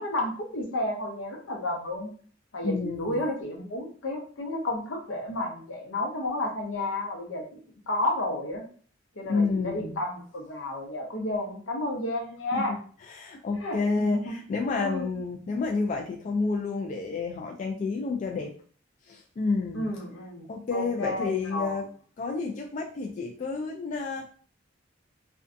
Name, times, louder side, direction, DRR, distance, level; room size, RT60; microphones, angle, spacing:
voice 1, 0.0-2.1 2.5-7.4 7.9-8.6 9.2-12.8 13.6-14.3 14.7-15.1 19.7-21.8, left 1 dB, 75° left, 1 dB, 0.7 m, -31 dB
voice 2, 2.6-3.2 9.3-10.0 12.5-12.8 13.1-18.5 19.1-19.9 20.5-21.9 22.2-24.2, left 4 dB, 40° left, 1 dB, 0.3 m, -29 dB
2.5 x 2.2 x 2.5 m, 0.43 s
head